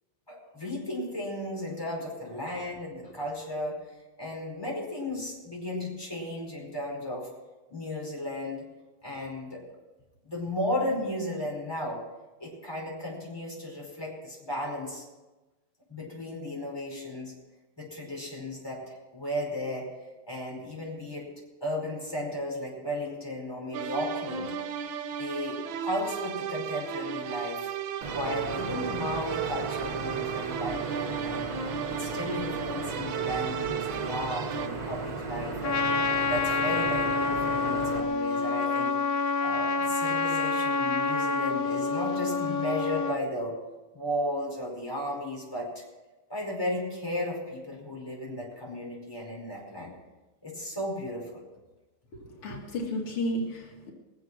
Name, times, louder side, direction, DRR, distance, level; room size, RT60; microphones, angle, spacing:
voice 1, 0.3-3.8 4.2-7.3 7.7-8.6 9.0-9.6 10.2-12.0 12.4-15.0 15.9-17.3 17.8-19.8 20.3-21.2 21.6-24.5 25.2-27.7 28.1-31.5 31.9-35.8 36.3-38.9 39.4-43.5 43.9-45.8 46.3-49.9 50.4-51.4, left 1 dB, 10° left, -3 dB, 5.0 m, -34 dB
sound 1, 23.7-34.7, right 8 dB, 70° right, 1.6 m, -35 dB
sound 2, 28.0-38.0, right 4 dB, 90° right, 2.7 m, -36 dB
Trumpet, 35.6-43.2, left 4 dB, 65° left, 0.9 m, -27 dB
voice 2, 52.1-53.9, left 1 dB, 85° left, 0 dB, 2.9 m, -33 dB
21.5 x 7.6 x 6.2 m, 1.1 s
omnidirectional pair, 2.3 m